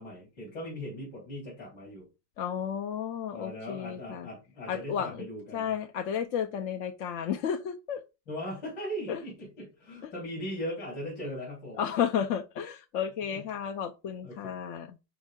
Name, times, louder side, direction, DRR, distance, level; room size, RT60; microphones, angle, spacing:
voice 1, 0.0-2.1 3.3-5.7 8.3-11.8 13.3-13.4 14.2-14.5, equal, 80° left, 4.4 m, -39 dB
voice 2, 2.4-4.3 4.7-5.3 5.5-8.0 9.1-9.2 10.0-10.1 11.8-15.0, left 8 dB, 60° left, 0.8 m, -32 dB
10.5 x 4.6 x 3.7 m
omnidirectional pair, 1.9 m